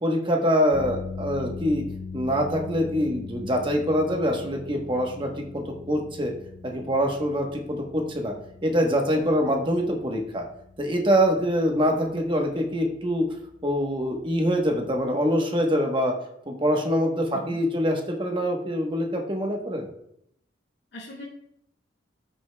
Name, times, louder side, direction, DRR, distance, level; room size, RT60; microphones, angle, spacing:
voice 1, 0.0-1.8 2.1-6.3 6.6-8.3 8.6-10.4 10.8-13.3 13.6-16.1 16.5-19.9, equal, 25° right, 2 dB, 1.1 m, -24 dB
sound 1, 0.7-15.0, left 4 dB, 50° left, 1.9 m, -41 dB
voice 2, 20.9-21.2, equal, 65° left, -8 dB, 1.7 m, -41 dB
13.5 x 6.3 x 2.3 m, 0.75 s
head